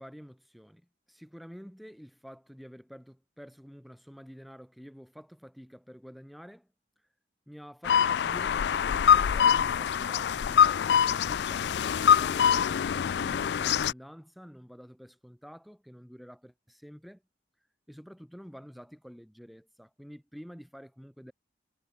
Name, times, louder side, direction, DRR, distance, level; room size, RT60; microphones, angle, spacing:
voice 1, 0.0-6.7 7.5-10.8 11.1-17.2 17.9-21.3, equal, ahead, 7.9 m, -49 dB
sound 1, 7.8-13.9, left 8 dB, 70° left, 0.4 m, -24 dB
head